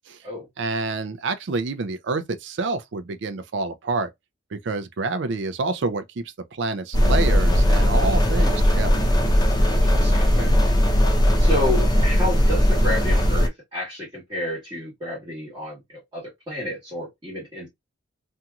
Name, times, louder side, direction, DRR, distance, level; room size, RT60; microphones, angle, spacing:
voice 1, 0.6-4.1 4.5-6.2 6.5-8.9, right 3 dB, 65° right, 0.4 m, -27 dB
sound 1, 6.9-13.5, equal, 20° left, 0.5 m, -18 dB
voice 2, 9.7-10.6 11.4-17.7, left 1 dB, 25° right, 1.4 m, -30 dB
2.8 x 2.6 x 2.3 m
head